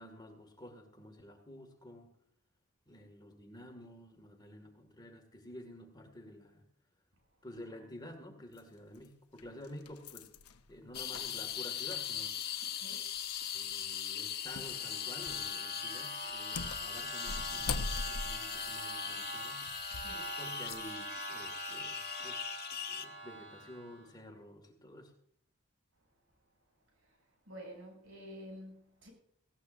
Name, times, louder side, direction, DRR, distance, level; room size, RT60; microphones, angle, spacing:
voice 1, 0.0-2.1 2.9-6.6 7.4-10.3 10.7-12.7 13.5-19.7 20.4-22.5 22.9-25.1, left 1 dB, 20° left, 3 dB, 2.1 m, -51 dB
sound 1, 8.6-8.7 9.4-12.9 13.2-13.3 14.6-14.8 15.2-15.5 16.2-20.2 20.7-20.9, left 3 dB, 85° left, 1.0 m, -42 dB
sound 2, 10.9-23.1, left 9 dB, 45° left, 1.2 m, -40 dB
voice 2, 12.8-13.1 19.9-20.3 27.5-29.1, equal, 65° right, 1 dB, 7.6 m, -49 dB
sound 3, 14.4-24.1, right 2 dB, 40° right, 5.5 m, -45 dB
19.5 x 17.0 x 2.6 m, 0.66 s
head